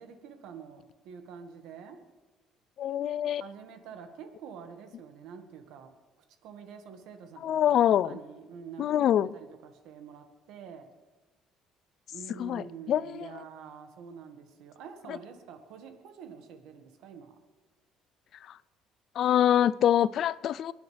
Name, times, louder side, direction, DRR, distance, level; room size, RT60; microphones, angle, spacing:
voice 1, 0.0-2.1 3.4-5.9 6.4-10.9 12.1-17.4, right 7 dB, 75° right, 1.8 m, -47 dB
voice 2, 2.8-3.4 7.4-8.2 8.8-9.3 12.4-13.3 15.1-15.2 19.2-20.7, left 10 dB, 50° left, 0.4 m, -25 dB
29.0 x 10.5 x 3.4 m
cardioid pair, 160°, 0 cm